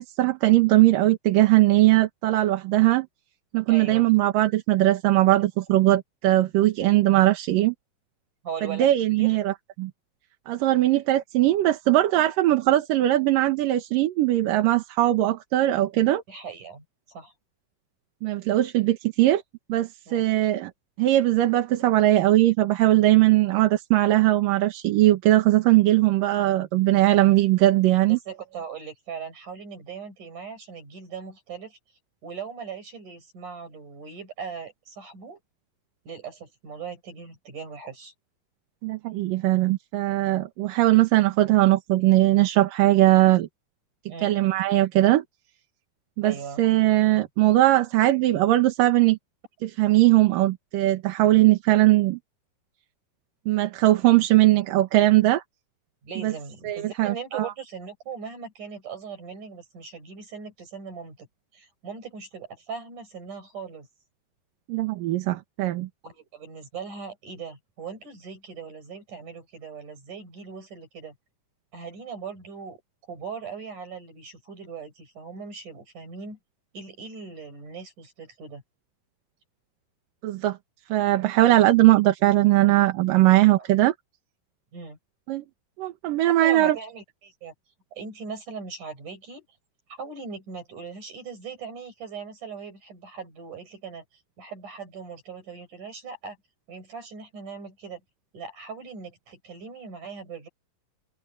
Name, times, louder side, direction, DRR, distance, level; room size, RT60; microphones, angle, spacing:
voice 1, 0.0-3.1 3.5-7.7 8.7-9.9 10.5-16.2 18.2-19.4 19.7-20.7 21.0-28.2 38.8-43.5 44.2-45.2 46.2-49.2 49.6-52.2 53.5-55.4 56.2-56.3 56.6-57.5 64.7-65.9 80.2-80.6 80.9-83.9 85.3-85.4 85.8-86.8, right 16 dB, 80° right, 2.9 m, -20 dB
voice 2, 3.7-4.1 8.4-9.4 16.3-17.3 20.1-20.2 28.1-31.8 32.2-35.4 36.1-38.1 44.1-44.3 46.2-46.6 56.0-61.3 61.5-63.9 66.0-71.2 71.7-72.8 73.1-76.4 76.7-78.6 83.6-83.7 84.7-85.0 86.2-87.5 87.9-89.4 89.9-94.0 94.4-96.4 96.7-98.0 98.3-100.5, right 5 dB, 65° right, 8.0 m, -39 dB
omnidirectional pair, 3.8 m